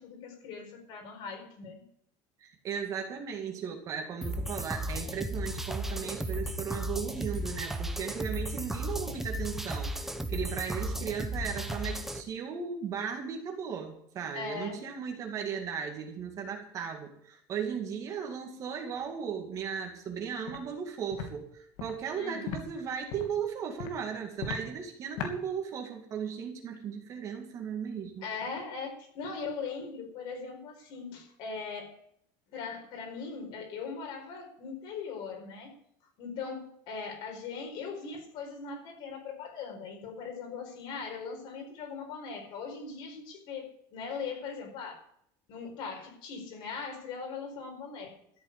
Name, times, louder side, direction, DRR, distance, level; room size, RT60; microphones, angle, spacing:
voice 1, 0.0-1.8 14.3-14.8 22.1-22.5 28.2-31.9 32.5-35.7 36.2-45.0 45.5-48.1, left 5 dB, 50° left, 3 dB, 4.6 m, -40 dB
voice 2, 2.4-28.3, right 7 dB, 30° right, 3 dB, 2.2 m, -36 dB
sound 1, 4.2-12.2, right 1 dB, 5° right, 0.9 m, -35 dB
Walk footsteps, 20.5-20.6 21.1-21.3 21.8-21.9 22.5-22.6 23.1-23.3 23.8-23.9 24.4-24.6 25.2-25.3, left 6 dB, 70° left, 3.1 m, -36 dB
13.5 x 8.5 x 8.1 m, 0.70 s
cardioid pair, 175°, 11 cm